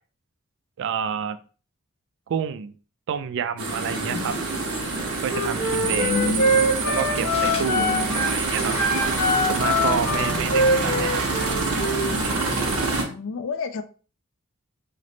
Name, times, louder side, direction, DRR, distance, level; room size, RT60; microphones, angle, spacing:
voice 1, 0.8-1.4 2.3-2.7 3.1-4.3 5.2-6.1 6.9-8.0 8.3-8.7 9.5-11.2, right 7 dB, 60° right, 12 dB, 0.3 m, -29 dB
sound 1, 3.6-13.0, right 3 dB, 85° right, 0.9 m, -26 dB
voice 2, 4.1-4.4 5.8-6.7 7.7-8.4 10.2-11.3 13.0-13.8, left 4 dB, 65° left, 8 dB, 0.4 m, -32 dB
Wind instrument woodwind instrument, 5.2-8.3 8.7-12.1, equal, 85° left, 1.1 m, -24 dB
Crumpling crinkling, 6.5-11.5, left 2 dB, 30° left, 0.9 m, -42 dB
3.1 x 2.1 x 3.8 m, 0.38 s
head